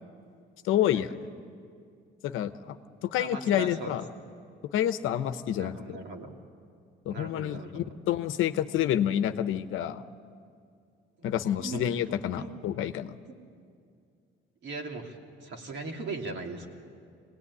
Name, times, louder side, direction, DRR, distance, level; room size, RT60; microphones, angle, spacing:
voice 1, 0.6-1.1 2.2-2.8 3.0-4.0 4.7-6.0 7.1-10.0 11.2-13.1, left 11 dB, 75° left, 10 dB, 1.0 m, -28 dB
voice 2, 3.1-3.9 5.6-6.3 7.1-7.9 11.6-11.8 12.4-12.6 13.3-13.4 14.6-16.7, right 3 dB, 60° right, 1 dB, 3.1 m, -39 dB
25.0 x 19.0 x 9.8 m, 2.3 s
cardioid pair, 110°, 21 cm